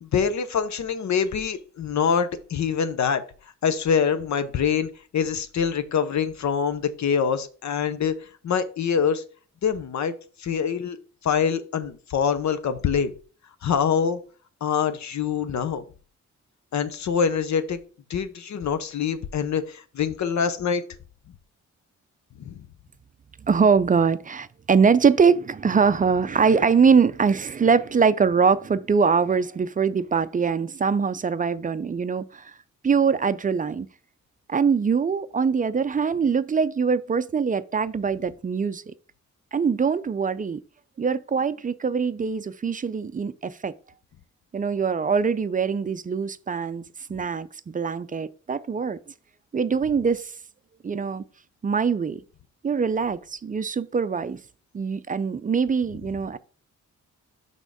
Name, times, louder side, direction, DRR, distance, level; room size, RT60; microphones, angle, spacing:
voice 1, 0.0-3.2 3.6-8.1 8.4-9.2 9.6-10.1 10.4-11.0 11.2-13.1 13.6-14.2 14.6-15.8 16.7-17.8 18.1-20.8 22.4-22.7, left 7 dB, 65° left, 0.8 m, -25 dB
voice 2, 23.4-32.5 32.8-33.9 34.5-38.9 39.5-40.6 41.0-43.7 44.5-46.8 47.1-49.0 49.5-50.3 50.8-51.2 51.6-52.2 52.6-54.4 54.7-56.4, right 5 dB, 30° right, 0.4 m, -23 dB
6.1 x 3.6 x 5.0 m
cardioid pair, 85°, 30 cm